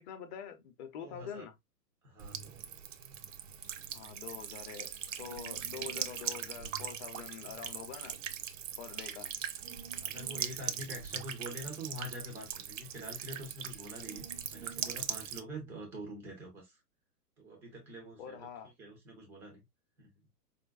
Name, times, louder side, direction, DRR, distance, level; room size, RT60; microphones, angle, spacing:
voice 1, 0.0-1.5 3.9-8.2 8.8-9.3 18.2-18.7, left 7 dB, 30° left, 0.7 m, -45 dB
voice 2, 1.0-1.4 2.0-2.8 8.9-9.3 10.0-14.3 14.5-16.7 17.4-18.4 18.8-19.6 20.0-20.1, equal, 5° right, 0.4 m, -45 dB
Buzz / Water tap faucet / Trickle dribble, 2.2-15.4, right 9 dB, 50° right, 0.6 m, -40 dB
5.1 x 2.1 x 2.4 m
hypercardioid pair, 120°, 48 cm